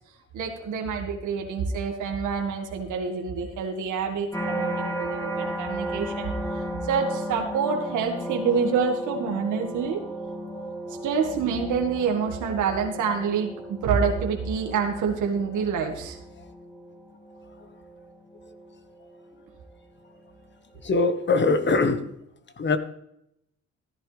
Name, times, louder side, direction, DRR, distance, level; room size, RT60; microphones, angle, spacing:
voice 1, 0.3-6.3 6.8-10.0 11.0-16.2, right 6 dB, 80° right, 2 dB, 2.0 m, -27 dB
sound 1, 4.3-19.5 20.0-20.5, right 1 dB, 10° left, 3.2 m, -35 dB
voice 2, 20.8-22.1 22.6-22.8, left 3 dB, 35° left, 10 dB, 1.3 m, -22 dB
14.5 x 11.0 x 3.4 m, 0.78 s
cardioid pair, 90°, 30 cm